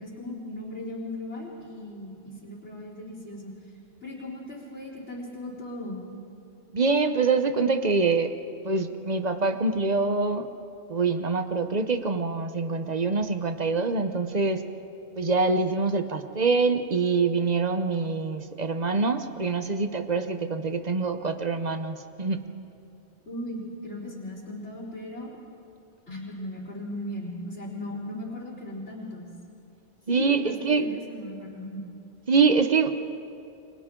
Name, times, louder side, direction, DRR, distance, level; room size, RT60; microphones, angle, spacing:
voice 1, 0.0-3.5 4.0-6.0 23.3-25.3 26.1-29.3 30.1-31.8, left 1 dB, 85° left, -10 dB, 4.2 m, -37 dB
voice 2, 6.7-8.3 8.6-10.5 10.9-14.6 15.2-22.4 30.1-30.9 32.3-32.9, right 4 dB, 40° right, 8 dB, 1.0 m, -25 dB
29.5 x 24.0 x 3.8 m, 2.6 s
omnidirectional pair, 1.1 m